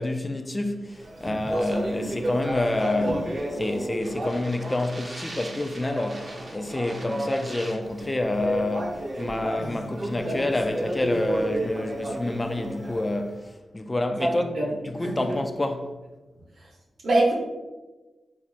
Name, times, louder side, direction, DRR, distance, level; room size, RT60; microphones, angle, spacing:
voice 1, 0.0-3.2 3.5-15.9, left 1 dB, 25° left, 0.3 m, -28 dB
Speech, 0.9-13.3, right 1 dB, 50° right, 0.7 m, -32 dB
voice 2, 14.2-14.7 15.0-15.1 17.0-17.3, right 2 dB, 80° right, 0.7 m, -24 dB
3.2 x 2.5 x 2.5 m
cardioid pair, 50°, 0 cm